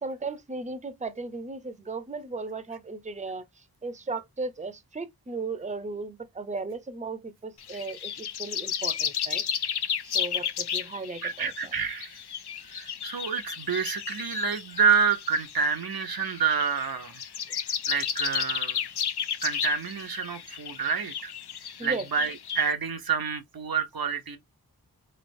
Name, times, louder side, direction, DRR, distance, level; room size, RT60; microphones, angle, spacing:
voice 1, 0.0-3.4 3.8-9.4 10.0-11.5 21.8-22.0, right 3 dB, 20° right, 0.6 m, -36 dB
sound 1, 7.6-22.7, left 8 dB, 85° left, 0.5 m, -33 dB
voice 2, 11.2-12.2 12.7-17.2 17.9-18.8 19.4-21.3 21.8-24.4, right 6 dB, 65° right, 0.7 m, -28 dB
3.8 x 3.2 x 2.6 m
wide cardioid pair, 45°, 38 cm